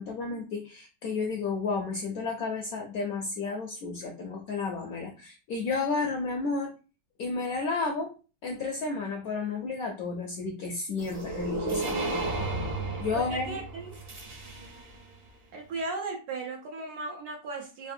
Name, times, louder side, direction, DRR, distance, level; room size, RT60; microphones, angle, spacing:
voice 1, 0.0-6.7 7.2-8.1 8.4-12.2 13.0-13.6, left 4 dB, 75° left, 1 dB, 0.8 m, -32 dB
sound 1, 11.0-15.0, right 2 dB, 45° right, 0.8 m, -33 dB
voice 2, 13.1-14.0 15.5-17.9, right 3 dB, 70° right, 2 dB, 1.0 m, -36 dB
3.3 x 2.5 x 2.6 m, 0.34 s
omnidirectional pair, 2.0 m